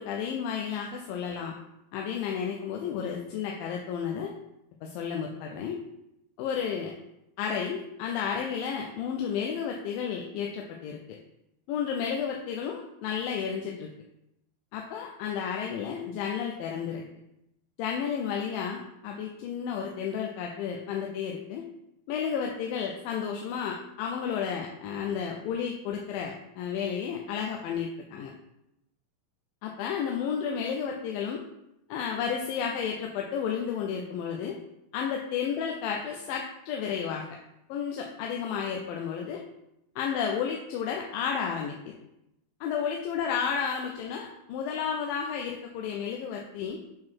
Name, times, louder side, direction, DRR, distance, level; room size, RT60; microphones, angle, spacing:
voice 1, 0.0-1.5 1.9-4.3 4.8-5.8 6.4-6.9 7.4-11.0 11.7-13.9 14.7-17.0 17.8-21.6 22.1-28.3 29.6-31.4 31.9-34.6 34.9-37.2 37.7-39.4 40.0-41.9 42.6-46.8, left 7 dB, 80° left, 1 dB, 2.3 m, -32 dB
7.5 x 3.8 x 4.6 m, 0.86 s
omnidirectional pair, 4.2 m